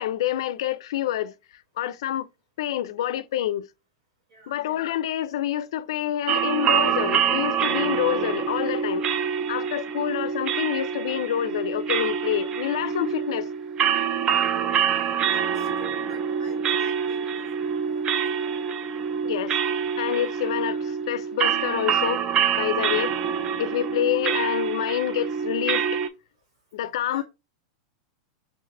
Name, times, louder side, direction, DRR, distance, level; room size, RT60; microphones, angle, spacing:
voice 1, 0.0-1.3 1.8-2.3 2.6-3.7 4.5-9.1 9.5-13.5 19.2-19.5 20.0-22.2 22.5-23.1 23.6-26.0 26.7-27.2, left 12 dB, 70° left, 0.4 m, -27 dB
voice 2, 4.3-4.7 14.9-18.6 20.2-20.5 27.1-27.2, right 3 dB, 80° right, 2.8 m, -50 dB
sound 1, 6.3-26.1, right 7 dB, 25° right, 0.3 m, -26 dB
3.6 x 3.3 x 3.7 m
supercardioid pair, 155°, 3 cm